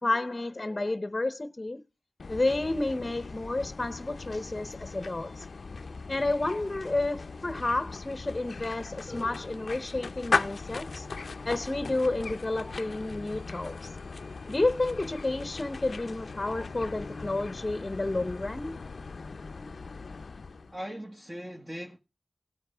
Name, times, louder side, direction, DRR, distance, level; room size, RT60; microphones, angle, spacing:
voice 1, 0.0-1.8 2.3-5.5 6.1-11.1 11.4-13.9 14.5-18.8 19.5-19.7, left 2 dB, 30° left, 0.9 m, -31 dB
sound 1, 2.2-20.8, left 4 dB, 85° left, 0.5 m, -38 dB
voice 2, 20.7-22.0, equal, 25° right, 1.6 m, -39 dB
16.5 x 9.5 x 3.5 m
wide cardioid pair, 85°, 0 cm